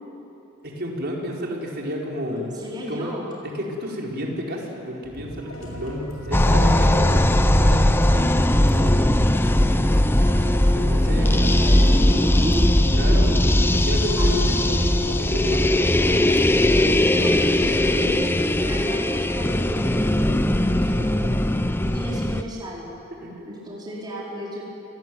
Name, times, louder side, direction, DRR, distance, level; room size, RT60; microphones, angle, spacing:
voice 1, 0.6-2.4 2.9-3.1 3.4-9.2 10.7-11.5 12.9-13.4 13.6-16.3 20.8-21.1 23.2-23.7, equal, 50° right, -2 dB, 4.8 m, -31 dB
voice 2, 2.3-3.3 6.3-6.7 11.0-13.3 14.2-14.5 17.1-20.7 21.9-23.0 23.4-24.6, equal, 20° right, -5 dB, 4.9 m, -34 dB
sound 1, 5.0-16.4, equal, 90° left, 6.2 m, -38 dB
sound 2, 6.3-22.4, left 1 dB, 10° left, 0.7 m, -19 dB
29.5 x 19.5 x 9.5 m, 2.8 s
head